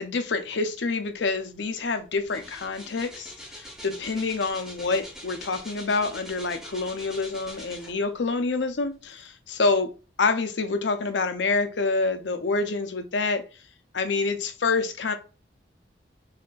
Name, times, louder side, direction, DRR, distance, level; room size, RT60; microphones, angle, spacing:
voice 1, 0.0-9.9 10.2-13.4 13.9-15.2, left 3 dB, 75° left, 0.7 m, -27 dB
sound 1, 1.5-1.7 2.0-8.3 8.8-8.9, equal, 5° right, 0.9 m, -43 dB
4.2 x 3.7 x 2.5 m
head